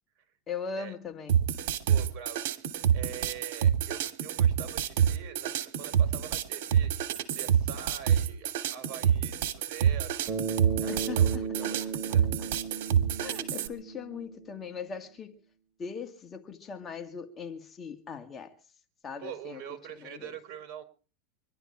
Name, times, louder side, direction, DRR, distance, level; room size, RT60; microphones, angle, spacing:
voice 1, 0.5-1.4 10.9-11.9 13.2-15.4 15.8-18.6 19.0-20.4, left 6 dB, 25° left, 2.1 m, -40 dB
sound 1, 1.3-13.7, right 9 dB, 65° right, 2.8 m, -27 dB
voice 2, 1.9-2.4 2.9-10.4 10.8-12.2 19.2-20.8, right 10 dB, 45° right, 5.6 m, -44 dB
Bass guitar, 10.3-14.7, right 5 dB, 25° right, 4.0 m, -36 dB
25.0 x 12.0 x 4.7 m
supercardioid pair, 125°, 0 cm